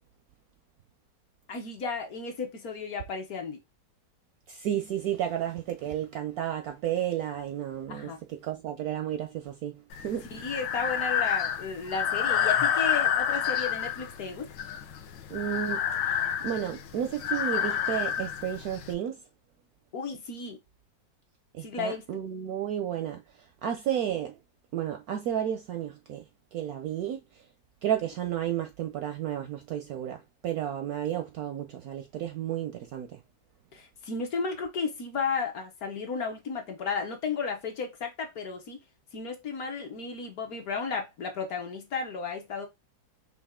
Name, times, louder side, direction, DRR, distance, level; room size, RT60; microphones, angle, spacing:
voice 1, 1.5-3.6 7.9-8.2 10.3-14.5 19.9-20.6 21.6-22.0 33.7-38.8 39.1-42.7, left 5 dB, 55° left, 1.2 m, -33 dB
voice 2, 4.5-10.3 15.3-19.2 21.5-23.2 23.6-24.3 24.7-26.2 26.5-27.2 27.8-33.2, right 10 dB, 70° right, 0.9 m, -32 dB
Breathing, 9.9-18.9, left 9 dB, 85° left, 1.4 m, -29 dB
5.6 x 2.4 x 3.5 m
omnidirectional pair, 2.0 m